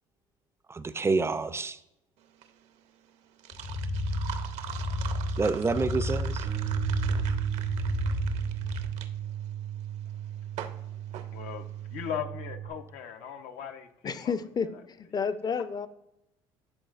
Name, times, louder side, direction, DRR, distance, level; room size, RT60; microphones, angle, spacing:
voice 1, 0.7-1.8 5.4-6.5, right 4 dB, 20° right, 13 dB, 0.4 m, -28 dB
sound 1, 2.2-12.1, right 9 dB, 65° right, 0.6 m, -43 dB
sound 2, 3.5-8.8, left 1 dB, 55° left, 1.2 m, -32 dB
Bass guitar, 6.4-12.7, right 11 dB, 90° right, 1.3 m, -34 dB
voice 2, 10.1-14.4 14.7-14.8, left 8 dB, 75° left, 6 dB, 0.6 m, -40 dB
voice 3, 14.0-15.9, left 6 dB, 35° left, 13 dB, 0.5 m, -31 dB
10.5 x 3.9 x 2.4 m, 0.84 s
supercardioid pair, 75°, 12 cm